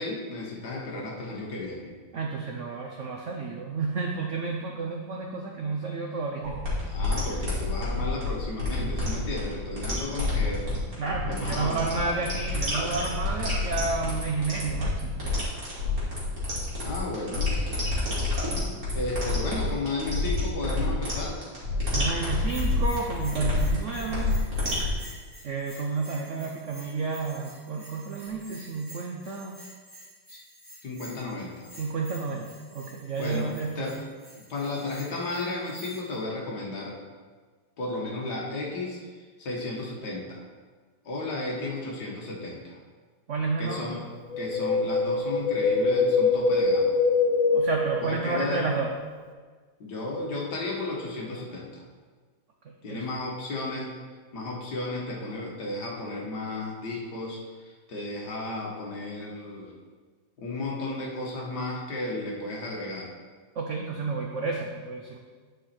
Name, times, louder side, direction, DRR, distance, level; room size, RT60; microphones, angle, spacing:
voice 1, 0.0-1.9 6.9-10.7 11.2-12.2 16.8-17.6 18.9-21.4 30.3-30.4 30.8-31.7 33.2-34.0 34.4-37.0 37.8-40.4 41.1-42.8 43.6-44.0 44.4-47.0 48.0-48.7 49.8-51.8 52.8-54.0 54.3-59.7 60.4-63.1, left 2 dB, 55° left, -2 dB, 2.0 m, -34 dB
voice 2, 2.1-6.6 11.0-15.2 21.9-24.4 25.4-29.6 31.8-33.9 43.3-43.9 47.5-48.9 52.6-53.0 63.6-65.2, right 4 dB, 75° right, 1 dB, 0.6 m, -31 dB
sound 1, 6.4-24.9, left 2 dB, 45° right, 3.0 m, -29 dB
Bell, 22.4-36.2, equal, 25° right, 2.6 m, -49 dB
Wind, 44.3-48.6 48.9-49.0, left 4 dB, 75° left, 1.5 m, -24 dB
9.8 x 5.4 x 4.3 m, 1.5 s
omnidirectional pair, 2.2 m